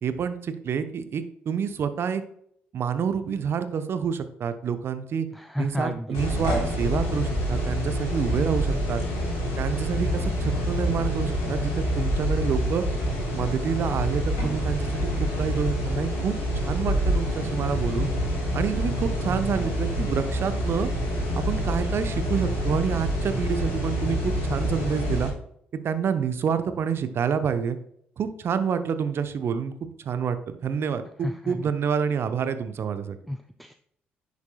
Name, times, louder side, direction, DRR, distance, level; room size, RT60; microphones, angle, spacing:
voice 1, 0.0-2.2 2.7-5.3 5.6-9.0 9.6-12.8 13.3-18.1 18.5-20.9 21.3-25.3 25.8-27.8 28.2-29.7 30.0-33.2, right 7 dB, 50° right, 10 dB, 0.9 m, -28 dB
voice 2, 5.3-6.2 19.3-19.7 20.0-20.2 31.2-31.6 33.3-33.7, left 1 dB, ahead, 8 dB, 0.5 m, -33 dB
sound 1, 6.1-25.3, equal, 65° left, 3.6 m, -27 dB
10.5 x 7.1 x 2.3 m, 0.68 s
figure-of-eight pair, 45°, 5 cm